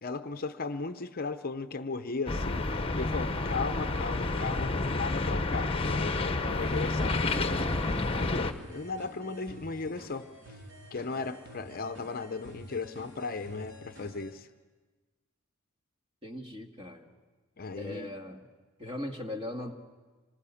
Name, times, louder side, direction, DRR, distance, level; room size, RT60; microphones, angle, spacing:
voice 1, 0.0-7.7 8.1-10.3 10.9-14.5 17.6-18.1, left 4 dB, 45° left, 10 dB, 0.7 m, -36 dB
sound 1, 2.3-8.5, left 2 dB, 25° left, 1.0 m, -29 dB
sound 2, 6.5-14.3, equal, 60° right, 3.7 m, -50 dB
voice 2, 16.2-17.1 17.8-18.4 18.8-19.7, left 1 dB, 25° right, 3 dB, 2.0 m, -39 dB
26.0 x 20.0 x 7.0 m, 1.3 s
head